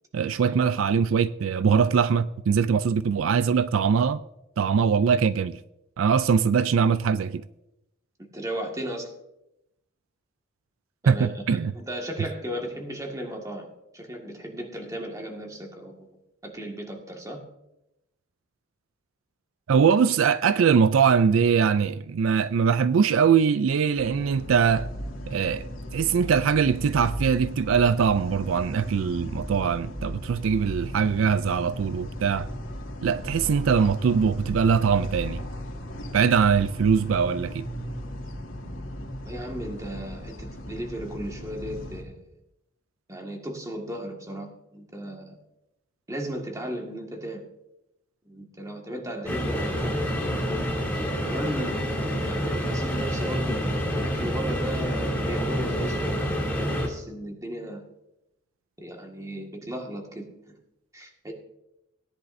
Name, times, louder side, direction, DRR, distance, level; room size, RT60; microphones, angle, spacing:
voice 1, 0.1-4.2 4.6-5.6 6.0-7.4 11.1-11.7 19.7-24.9 25.3-25.6 25.9-32.5 33.0-35.4 36.1-37.6, right 6 dB, 80° right, 0.4 m, -22 dB
voice 2, 8.2-9.1 11.0-16.1 16.4-17.4 39.3-42.3 43.1-45.4 46.1-47.4 48.3-50.3 51.2-51.8 52.2-57.9 58.8-60.3 60.9-61.3, equal, 15° right, 1.9 m, -35 dB
sound 1, 23.9-42.0, equal, 85° left, 2.4 m, -36 dB
sound 2, 49.2-56.9, equal, 10° left, 3.8 m, -27 dB
18.0 x 10.5 x 2.7 m
head